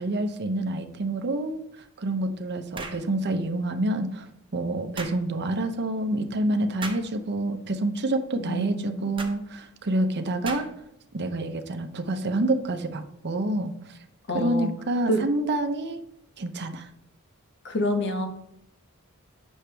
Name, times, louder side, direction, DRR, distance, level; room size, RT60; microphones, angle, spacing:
voice 1, 0.0-10.7 11.1-14.0 14.3-16.0 16.4-16.9, right 1 dB, 50° right, 8 dB, 0.7 m, -28 dB
sound 1, 2.7-3.1 5.0-5.2 6.8-7.1 9.2-9.4 10.5-10.9, right 3 dB, 25° right, 0.9 m, -36 dB
voice 2, 8.3-9.1 14.3-14.7 15.1-15.2 17.6-18.3, left 1 dB, 55° left, 4 dB, 1.1 m, -27 dB
8.4 x 6.3 x 3.4 m, 0.75 s
head